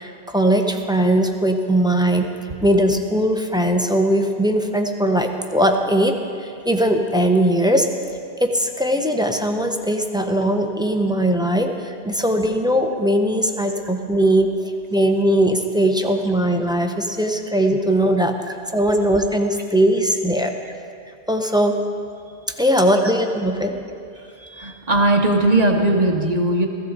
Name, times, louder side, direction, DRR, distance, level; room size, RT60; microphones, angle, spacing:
voice 1, 0.0-2.3 2.6-7.9 8.4-14.5 14.9-18.3 18.7-20.5 21.3-21.7 22.6-23.8, right 1 dB, 5° right, 4 dB, 0.7 m, -19 dB
voice 2, 24.4-26.7, right 1 dB, 40° right, 2 dB, 1.0 m, -19 dB
16.5 x 15.5 x 4.0 m, 2.4 s
omnidirectional pair, 1.1 m